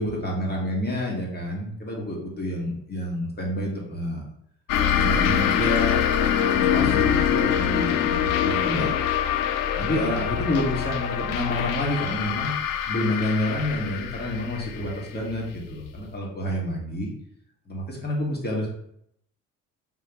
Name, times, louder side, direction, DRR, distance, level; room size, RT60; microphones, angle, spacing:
voice 1, 0.0-4.2 4.9-6.0 6.5-8.9 9.7-12.6 12.8-17.1 17.7-18.7, left 1 dB, 25° left, -2 dB, 1.5 m, -28 dB
sound 1, 4.7-15.9, left 9 dB, 60° left, 0.5 m, -24 dB
3.8 x 2.9 x 3.0 m, 0.72 s
hypercardioid pair, 55°, 37 cm